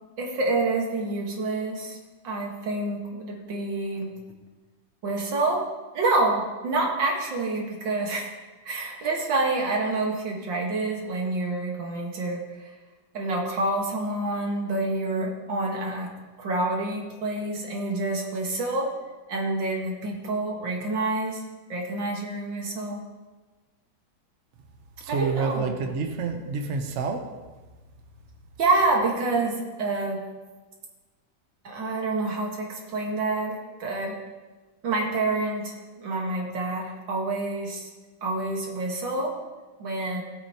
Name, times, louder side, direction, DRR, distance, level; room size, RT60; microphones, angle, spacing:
voice 1, 0.2-2.0 2.2-4.1 5.0-5.7 5.9-8.3 8.6-12.7 13.1-18.9 19.3-21.4 21.7-23.0 25.1-25.7 28.6-30.2 31.6-34.2 34.8-37.9 38.2-39.4 39.8-40.2, right 2 dB, 85° right, 0 dB, 2.3 m, -27 dB
voice 2, 25.0-27.2, right 5 dB, 45° right, 4 dB, 1.1 m, -28 dB
17.5 x 8.1 x 3.0 m, 1.3 s
omnidirectional pair, 2.0 m